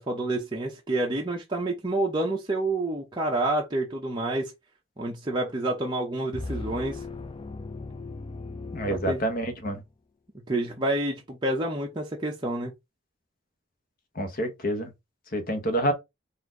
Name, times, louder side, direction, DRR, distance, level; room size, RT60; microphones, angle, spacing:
voice 1, 0.0-4.5 5.0-7.0 8.9-9.2 10.5-12.7, right 2 dB, 20° right, 0.7 m, -28 dB
sound 1, 6.3-9.8, left 3 dB, 25° left, 0.4 m, -38 dB
voice 2, 8.7-9.8 14.2-14.9 15.3-15.9, right 1 dB, 45° left, 1.0 m, -27 dB
4.3 x 2.6 x 4.6 m
head